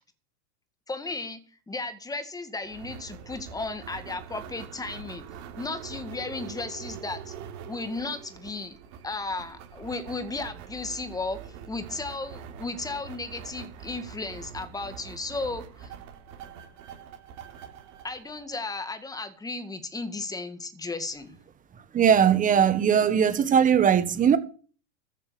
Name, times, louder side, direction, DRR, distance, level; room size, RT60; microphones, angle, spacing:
voice 1, 0.9-1.4 1.7-5.2 5.6-7.3 7.7-8.8 9.0-11.4 11.7-15.9 18.0-21.4, left 3 dB, 10° left, 1.9 m, -34 dB
sound 1, 2.6-19.1, right 8 dB, 50° right, 3.8 m, -44 dB
voice 2, 21.9-24.4, right 8 dB, 20° right, 1.5 m, -20 dB
14.0 x 7.5 x 6.9 m
supercardioid pair, 125°, 36 cm